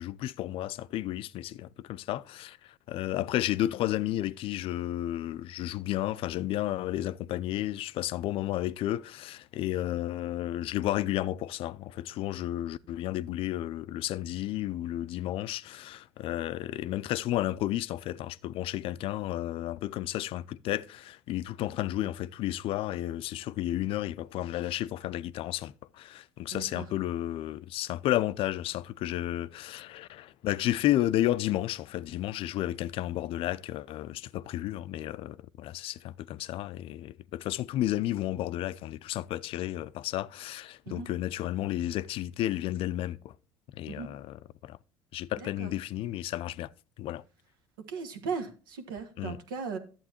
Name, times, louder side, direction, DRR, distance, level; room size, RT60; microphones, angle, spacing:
voice 1, 0.0-43.3 43.7-44.4 44.6-44.8 45.1-46.7 47.0-47.2 49.2-49.4, left 14 dB, 55° left, 0.4 m, -32 dB
voice 2, 26.5-26.9 40.9-41.1 43.9-44.1 45.4-45.7 47.9-49.8, right 5 dB, 80° right, 1.2 m, -37 dB
11.5 x 7.7 x 2.9 m
hypercardioid pair, 70°, 11 cm